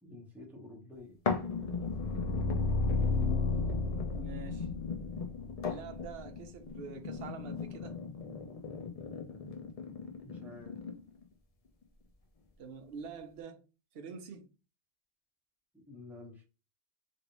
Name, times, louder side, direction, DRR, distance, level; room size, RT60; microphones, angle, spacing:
voice 1, 0.0-1.2 10.2-10.8 15.7-16.5, left 2 dB, ahead, 0.9 m, -50 dB
sound 1, 1.3-11.2 11.8-11.9, left 5 dB, 45° left, 0.5 m, -39 dB
sound 2, 1.4-6.4, left 3 dB, 85° left, 0.9 m, -33 dB
voice 2, 4.2-4.7 5.6-8.0 12.6-13.6 13.9-14.5, right 5 dB, 65° right, 0.8 m, -45 dB
3.1 x 2.6 x 2.9 m
omnidirectional pair, 1.2 m